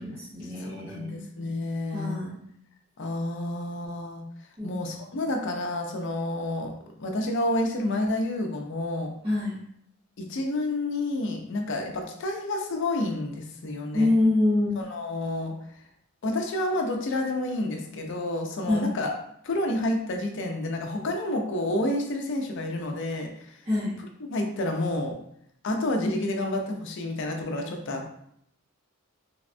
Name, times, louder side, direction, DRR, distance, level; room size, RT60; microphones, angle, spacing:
voice 1, 0.0-1.2 1.9-2.4 4.6-5.0 9.2-9.6 13.9-14.8 18.7-18.9 23.6-23.9, left 2 dB, 30° right, -11 dB, 0.7 m, -26 dB
voice 2, 0.6-2.2 3.0-4.3 4.6-6.7 7.0-9.1 10.2-14.1 14.8-15.5 16.2-19.2 19.4-23.6 24.3-25.2 25.6-28.2, left 1 dB, 60° left, 3 dB, 0.5 m, -29 dB
3.4 x 2.1 x 2.5 m, 0.70 s
head